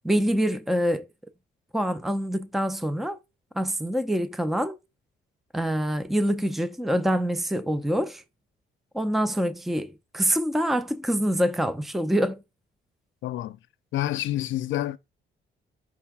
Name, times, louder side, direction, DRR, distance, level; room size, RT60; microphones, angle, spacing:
voice 1, 0.0-1.1 1.7-3.2 3.5-4.8 5.5-8.2 8.9-12.4, equal, ahead, 0.5 m, -25 dB
voice 2, 13.2-13.6 13.9-15.0, left 13 dB, 75° left, 0.6 m, -28 dB
6.2 x 3.3 x 4.7 m
cardioid pair, 90°, 20 cm